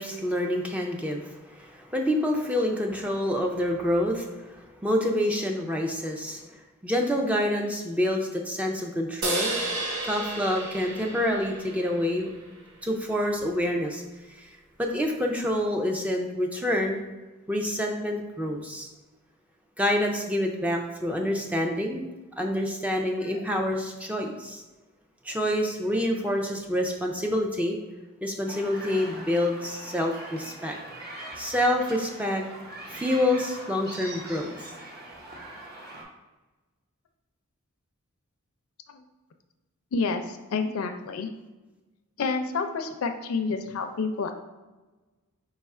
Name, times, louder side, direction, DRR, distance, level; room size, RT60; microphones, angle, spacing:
voice 1, 0.0-6.4 6.8-9.5 10.0-12.3 12.8-14.0 14.3-14.5 14.8-17.0 17.5-18.9 19.8-22.1 22.4-24.6 25.2-27.8 28.2-30.8 31.4-32.4 32.9-34.7, left 1 dB, 5° right, 1 dB, 0.3 m, -27 dB
sound 1, 9.2-12.7, right 2 dB, 80° right, 0.9 m, -32 dB
sound 2, 28.5-36.0, right 1 dB, 45° right, 0.9 m, -42 dB
voice 2, 39.9-41.3 42.2-44.3, left 4 dB, 65° left, 7 dB, 0.4 m, -29 dB
4.6 x 2.3 x 4.2 m, 1.2 s
head